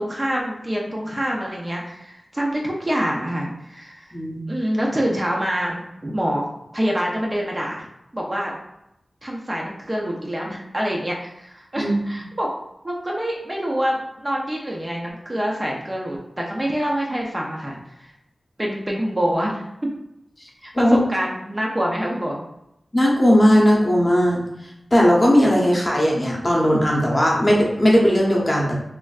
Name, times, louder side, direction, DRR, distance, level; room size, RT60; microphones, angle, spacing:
voice 1, 0.0-4.1 4.5-6.5 6.7-7.9 8.1-8.5 9.2-12.5 12.8-18.1 18.6-19.6 20.6-22.4, equal, 25° right, -2 dB, 0.5 m, -26 dB
voice 2, 4.1-4.4 11.8-12.2 20.7-21.0 22.9-24.4 24.9-28.8, equal, 30° left, -3 dB, 0.7 m, -17 dB
3.2 x 2.5 x 2.3 m, 0.83 s
wide cardioid pair, 95°, 0 cm